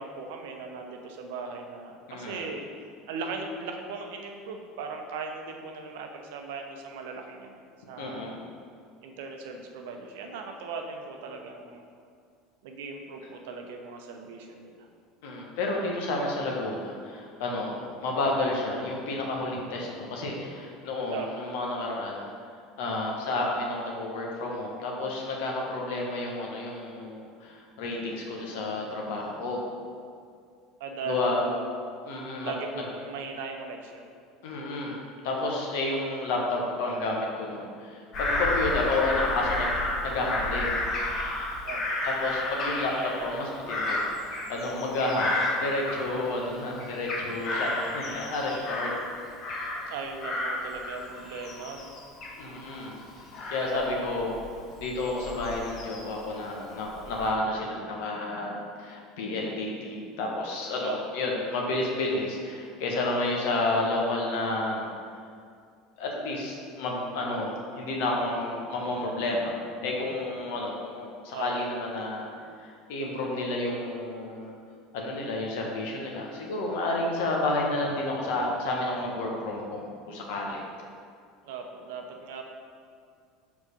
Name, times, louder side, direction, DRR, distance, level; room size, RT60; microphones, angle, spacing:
voice 1, 0.0-2.6 3.1-8.2 9.0-11.9 12.6-14.9 21.1-21.3 30.8-31.7 32.4-34.1 41.7-41.8 49.9-52.0 53.6-54.2 60.8-61.0 71.3-71.5 81.4-82.4, right 4 dB, 65° right, 3 dB, 0.7 m, -38 dB
voice 2, 2.1-2.4 8.0-8.4 15.2-22.3 22.8-29.6 31.0-31.5 32.0-32.5 34.4-39.7 40.0-40.8 41.6-41.7 42.0-48.9 52.4-53.0 53.5-54.4 54.8-58.5 58.8-65.0 66.0-72.3 72.6-74.5 74.9-80.6, left 2 dB, 60° left, -1 dB, 1.2 m, -31 dB
Bird vocalization bird call bird song / Crow, 38.1-46.5 46.8-49.9 50.2-56.2 56.7-57.3, left 1 dB, 45° left, 1.3 m, -32 dB
4.8 x 4.8 x 5.3 m, 2.2 s
figure-of-eight pair, 70°, 0 cm